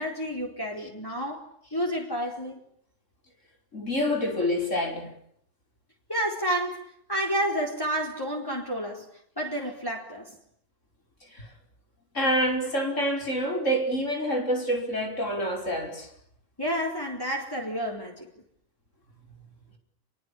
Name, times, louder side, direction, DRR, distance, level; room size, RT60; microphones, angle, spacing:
voice 1, 0.0-1.4 1.7-2.6 6.1-9.0 9.4-10.4 16.6-18.3, equal, 15° left, 4.3 m, -30 dB
voice 2, 3.7-5.1 11.3-11.5 12.1-16.1, equal, 65° left, 5.7 m, -27 dB
28.5 x 23.5 x 8.7 m
omnidirectional pair, 1.4 m